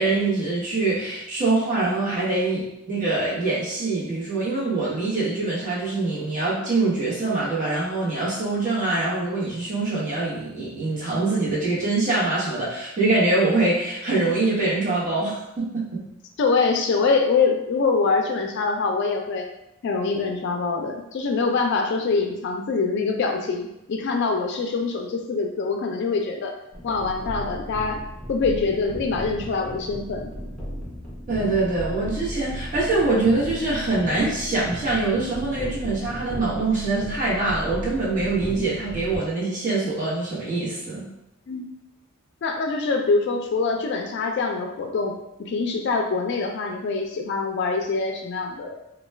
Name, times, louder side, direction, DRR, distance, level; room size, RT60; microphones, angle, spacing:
voice 1, 0.0-16.0 31.3-41.1, right 3 dB, 40° right, -7 dB, 0.9 m, -24 dB
voice 2, 16.4-19.5 19.8-26.6 26.8-28.0 28.3-30.3 41.5-41.6 42.4-48.8, left 4 dB, 55° left, 3 dB, 0.3 m, -24 dB
sound 1, 26.7-39.2, equal, 5° left, 0.6 m, -35 dB
2.2 x 2.2 x 3.2 m, 0.89 s
head